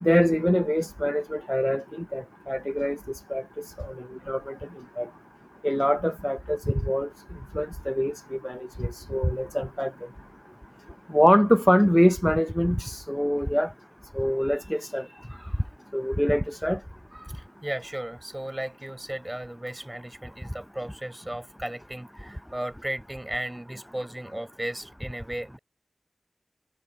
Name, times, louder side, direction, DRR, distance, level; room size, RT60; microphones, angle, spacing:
voice 1, 0.0-3.0 3.3-3.4 3.8-3.9 4.3-4.6 5.0-5.1 5.6-7.1 7.5-9.9 11.1-13.7 14.1-15.1 15.9-16.8, equal, 5° left, 0.5 m, -24 dB
voice 2, 15.3-15.7 17.1-25.6, right 1 dB, 20° right, 4.5 m, -35 dB
wide cardioid pair, 40°, 0 cm